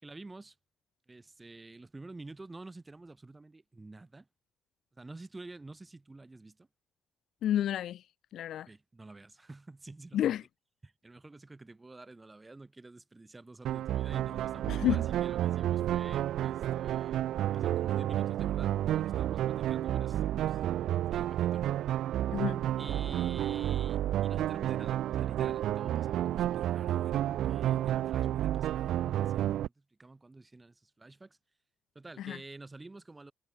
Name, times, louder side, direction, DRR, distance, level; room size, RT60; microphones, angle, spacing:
voice 1, 0.0-0.6 1.1-4.3 4.9-6.7 8.7-10.4 10.8-17.2 17.5-20.8 21.1-21.7 22.8-31.4 32.0-33.3, right 2 dB, 20° right, 6.9 m, -49 dB
voice 2, 7.4-8.0 8.3-8.7 10.1-10.4 14.7-15.0 22.3-22.6 32.2-32.4, left 11 dB, 75° left, 0.7 m, -30 dB
sound 1, 13.6-29.7, right 12 dB, 80° right, 2.0 m, -31 dB
cardioid pair, 90°, 0 cm